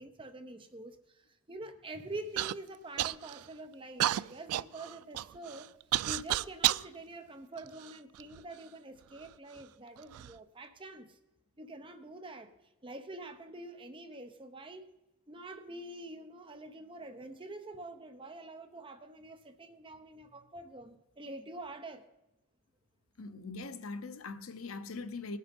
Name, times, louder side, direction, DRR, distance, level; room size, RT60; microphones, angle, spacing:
voice 1, 0.0-5.7 6.0-11.2 11.6-12.5 12.8-14.9 15.3-22.0, right 2 dB, 25° right, 0.8 m, -46 dB
Human voice / Cough, 2.4-2.6 3.0-3.5 4.0-6.9 7.6-8.4 9.2-9.3 10.0-10.3, right 14 dB, 85° right, 0.3 m, -32 dB
voice 2, 23.2-25.4, left 3 dB, 65° left, 0.8 m, -41 dB
19.0 x 6.5 x 5.3 m
head